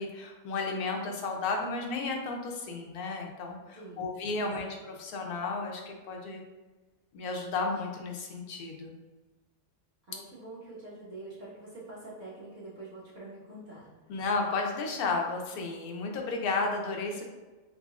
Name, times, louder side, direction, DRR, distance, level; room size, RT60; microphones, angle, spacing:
voice 1, 0.0-4.7 5.0-6.4 7.1-8.9 14.1-17.2, left 3 dB, 75° left, 2 dB, 1.1 m, -33 dB
voice 2, 3.7-4.1 4.4-4.7 10.0-14.2, right 2 dB, 55° right, -8 dB, 1.7 m, -46 dB
3.9 x 3.7 x 2.4 m, 1.2 s
omnidirectional pair, 1.6 m